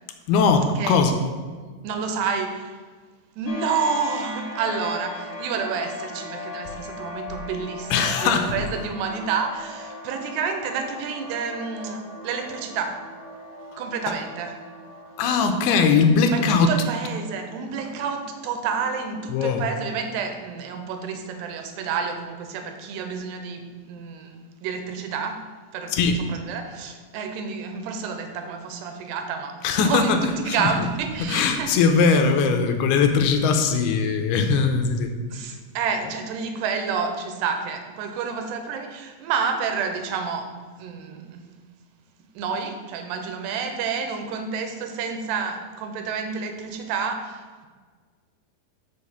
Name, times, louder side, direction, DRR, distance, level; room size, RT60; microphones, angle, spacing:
voice 1, 0.3-1.2 7.9-8.6 15.2-16.8 19.3-19.6 25.9-26.4 29.6-30.9 31.2-35.1, left 5 dB, 80° left, 6 dB, 2.6 m, -20 dB
voice 2, 1.8-2.8 3.4-13.0 13.8-14.6 16.3-25.5 25.7-25.9 26.3-31.8 35.3-41.4 42.4-47.7, right 5 dB, 90° right, 5 dB, 3.0 m, -29 dB
sound 1, 3.5-20.7, left 2 dB, 55° left, 1.9 m, -39 dB
6.6 x 5.8 x 7.0 m, 1.5 s
omnidirectional pair, 4.8 m